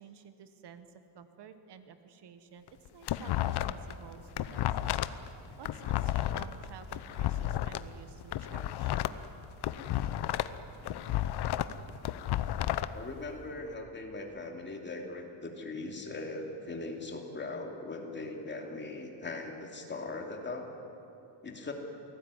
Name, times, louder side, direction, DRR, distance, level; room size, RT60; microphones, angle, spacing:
voice 1, 0.0-4.8 5.6-9.0, right 7 dB, 55° right, 9 dB, 1.5 m, -52 dB
sound 1, 2.7-3.9 4.2-7.8 8.2-10.6 10.8-12.9, left 13 dB, 50° left, 0.9 m, -32 dB
voice 2, 12.9-20.7 21.4-21.7, left 2 dB, 20° left, 2 dB, 2.9 m, -40 dB
28.0 x 19.0 x 9.9 m, 2.9 s
cardioid pair, 170°, 49 cm